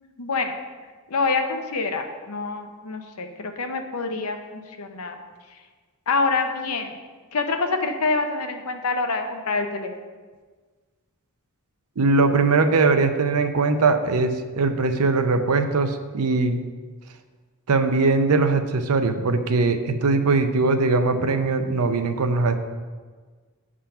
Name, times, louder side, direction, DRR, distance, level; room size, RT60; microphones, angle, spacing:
voice 1, 0.2-0.5 1.1-5.2 6.1-6.9 7.3-9.9, left 3 dB, 75° left, 5 dB, 0.8 m, -26 dB
voice 2, 12.0-16.6 17.7-22.6, right 3 dB, 75° right, 8 dB, 0.6 m, -21 dB
8.7 x 3.7 x 5.7 m, 1.5 s
head